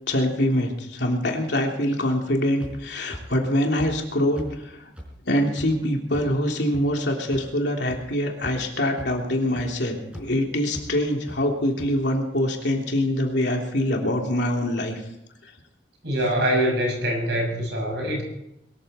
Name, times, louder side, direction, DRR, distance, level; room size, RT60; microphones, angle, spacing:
voice 1, 0.1-4.8 5.2-15.0, left 1 dB, 65° left, 1 dB, 3.3 m, -24 dB
sound 1, 2.6-2.7 3.1-3.2 3.8-3.9 4.4-4.5 5.0-5.1 5.6-5.7 6.1-6.2 6.7-6.8 7.3-7.4 7.9-8.0 8.4-8.7 9.0-9.1 9.5-9.7 10.1-10.2 10.7-10.8 11.3-11.4 11.8-11.9, equal, 5° right, 5.0 m, -38 dB
voice 2, 16.0-18.2, equal, 65° right, 2 dB, 6.6 m, -24 dB
22.5 x 14.0 x 4.4 m, 0.83 s
head